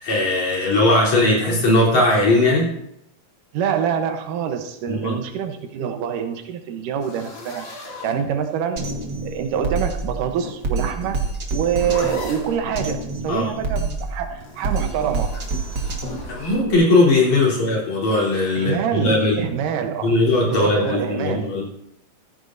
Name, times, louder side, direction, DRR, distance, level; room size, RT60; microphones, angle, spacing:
voice 1, 0.0-2.7 4.9-5.2 13.3-13.5 16.3-19.4 20.0-21.6, left 2 dB, 60° left, -5 dB, 4.8 m, -19 dB
voice 2, 3.5-7.7 8.0-8.9 9.2-11.2 11.5-15.4 18.6-20.1 20.5-21.5, right 8 dB, 85° right, 6 dB, 2.6 m, -25 dB
sound 1, 7.0-8.8 10.0-12.6 14.4-16.7, left 3 dB, 40° left, 2.8 m, -38 dB
Drum kit, 8.8-16.7, right 3 dB, 45° right, 1.4 m, -28 dB
14.5 x 14.5 x 2.6 m, 0.80 s
omnidirectional pair, 3.7 m